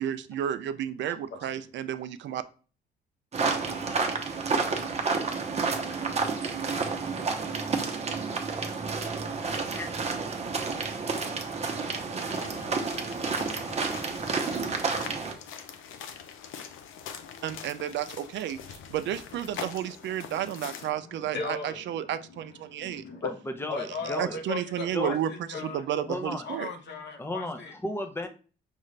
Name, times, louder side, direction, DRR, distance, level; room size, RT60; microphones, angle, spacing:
voice 1, 0.0-2.4 17.4-23.0 24.1-25.3 25.6-26.7, right 10 dB, 65° right, 12 dB, 0.4 m, -32 dB
sound 1, 3.3-15.3, right 4 dB, 35° right, 0.8 m, -30 dB
sound 2, 12.2-20.9, left 8 dB, 85° left, 0.6 m, -43 dB
voice 2, 20.9-23.3 23.7-25.8 26.4-27.7, left 4 dB, 60° left, 5 dB, 0.9 m, -39 dB
voice 3, 23.2-24.4 24.9-25.2 25.5-25.6 26.0-26.5 27.2-28.3, left 1 dB, 10° left, 6 dB, 0.6 m, -35 dB
5.4 x 2.4 x 3.2 m, 0.37 s
cardioid pair, 90°, 20 cm